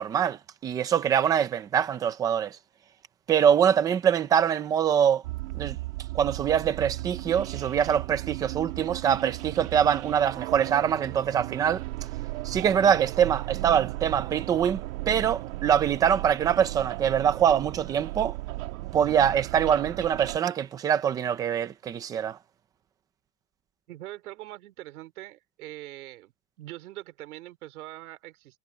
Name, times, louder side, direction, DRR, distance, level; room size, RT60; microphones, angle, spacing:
voice 1, 0.0-2.6 3.3-5.2 5.5-5.8 6.1-11.8 12.4-18.4 18.9-22.4, right 8 dB, 10° right, 0.4 m, -24 dB
sound 1, 5.2-20.4, right 19 dB, 65° right, 2.9 m, -36 dB
voice 2, 23.9-26.3 26.6-28.6, right 16 dB, 90° right, 4.0 m, -42 dB
supercardioid pair, 175°, 43 cm